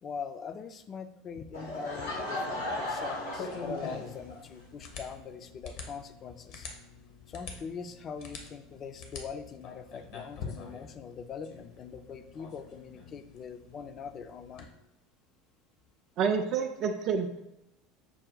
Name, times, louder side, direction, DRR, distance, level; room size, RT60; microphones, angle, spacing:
voice 1, 0.0-6.7 7.3-14.7, left 6 dB, 40° left, 9 dB, 0.4 m, -42 dB
Laughter / Crowd, 1.5-4.4, left 1 dB, 85° left, 1.0 m, -36 dB
sound 1, 1.9-14.7, left 4 dB, 60° left, 0.8 m, -46 dB
voice 2, 16.2-17.4, right 6 dB, 50° right, 4 dB, 0.4 m, -28 dB
5.9 x 2.2 x 3.8 m, 0.90 s
hypercardioid pair, 75°, 0 cm